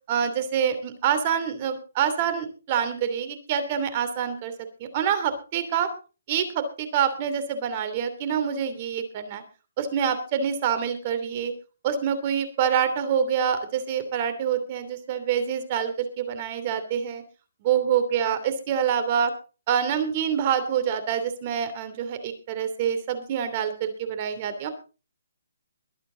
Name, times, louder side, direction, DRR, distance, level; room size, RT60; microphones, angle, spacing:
voice 1, 0.1-4.5 4.8-5.9 6.3-9.4 9.8-11.5 11.8-17.2 17.6-19.3 19.7-24.7, right 8 dB, 35° right, 10 dB, 2.9 m, -26 dB
22.5 x 8.8 x 3.9 m, 0.34 s
hypercardioid pair, 155°, 0 cm